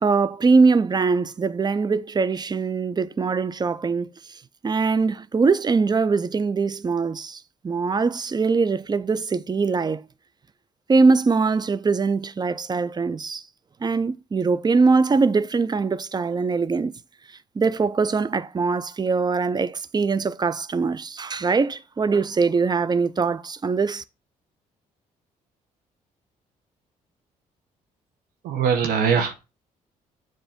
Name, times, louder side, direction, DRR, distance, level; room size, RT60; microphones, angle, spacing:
voice 1, 0.0-4.1 4.6-10.0 10.9-13.4 13.8-16.9 17.6-24.0, right 4 dB, 25° right, 0.5 m, -22 dB
voice 2, 28.4-29.4, right 6 dB, 80° right, 0.9 m, -21 dB
7.8 x 2.7 x 5.1 m
supercardioid pair, 65°, 15 cm